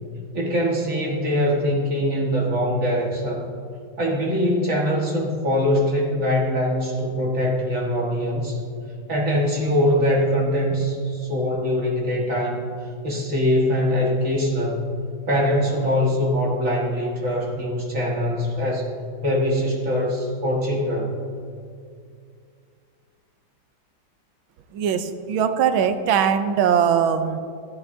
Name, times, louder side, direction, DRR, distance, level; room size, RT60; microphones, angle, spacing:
voice 1, 0.3-3.5 4.0-8.6 9.1-14.9 15.3-18.9 19.2-21.1, equal, 40° right, -3 dB, 1.9 m, -23 dB
voice 2, 24.7-27.4, right 8 dB, 80° right, 9 dB, 1.4 m, -21 dB
15.0 x 10.5 x 2.7 m, 2.3 s
omnidirectional pair, 2.2 m